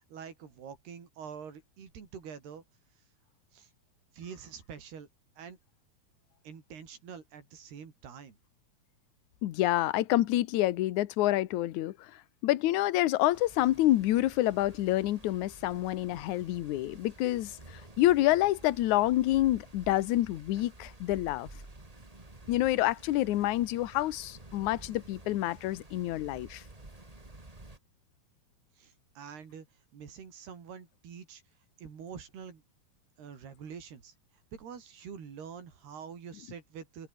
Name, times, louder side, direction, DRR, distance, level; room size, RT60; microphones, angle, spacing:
voice 1, 0.0-2.6 3.0-3.1 3.5-3.7 4.1-5.1 5.4-5.6 6.4-8.4 28.8-31.4 31.8-32.6 33.2-34.2 34.5-37.1, right 7 dB, 85° right, 6.1 m, -46 dB
voice 2, 9.4-12.1 12.4-21.5 22.5-26.6, left 15 dB, 70° left, 2.0 m, -28 dB
sound 1, 13.3-27.8, right 2 dB, 10° right, 2.0 m, -52 dB
open air
omnidirectional pair, 4.5 m